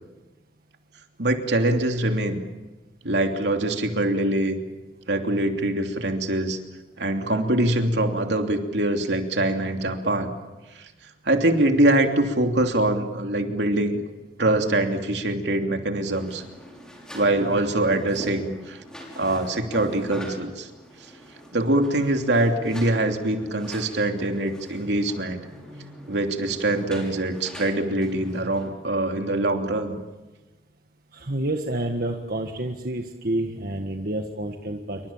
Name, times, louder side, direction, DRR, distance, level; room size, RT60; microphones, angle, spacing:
voice 1, 1.2-2.4 3.0-4.6 5.1-6.6 7.0-10.3 10.7-10.9 11.2-14.0 14.4-16.4 17.1-18.8 19.1-20.7 21.5-25.5 26.1-30.0, right 1 dB, 75° right, 4 dB, 3.0 m, -23 dB
sound 1, 16.0-28.7, equal, 5° left, 6.2 m, -43 dB
voice 2, 31.1-35.0, right 1 dB, 55° right, 3 dB, 1.7 m, -29 dB
28.0 x 24.5 x 7.4 m, 1.1 s
head